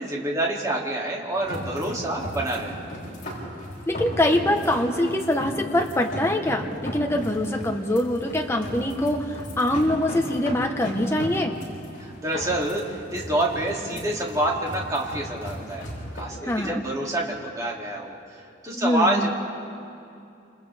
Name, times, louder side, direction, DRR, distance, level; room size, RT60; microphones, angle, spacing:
voice 1, 0.0-2.7 12.0-15.8 16.1-18.2 18.6-19.3, right 1 dB, 15° right, -3 dB, 2.9 m, -27 dB
sound 1, 1.3-16.2, equal, 40° left, 6.8 m, -36 dB
voice 2, 3.9-11.5 16.4-16.8 18.7-19.3, left 1 dB, 15° left, 2 dB, 1.2 m, -24 dB
30.0 x 28.0 x 3.6 m, 2.5 s
head